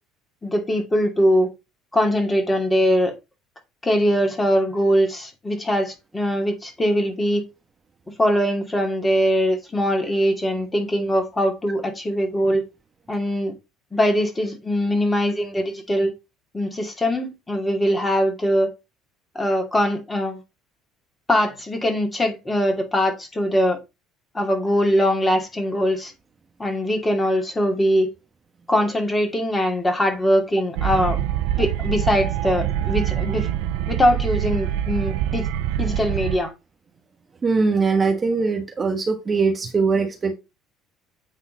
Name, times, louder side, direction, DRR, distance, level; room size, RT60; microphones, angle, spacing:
voice 1, 0.4-1.5 1.9-3.1 3.8-7.4 8.2-12.6 13.1-13.5 13.9-16.1 16.5-18.7 19.3-20.4 21.3-23.8 24.3-26.1 26.6-28.1 28.7-31.2 31.6-33.5 33.9-35.5 35.8-36.5, equal, 20° left, 2.5 m, -21 dB
sound 1, 30.8-36.4, right 11 dB, 70° right, 0.6 m, -25 dB
voice 2, 37.4-40.3, right 4 dB, 30° right, 1.2 m, -21 dB
8.5 x 3.8 x 4.0 m
hypercardioid pair, 60°, 0 cm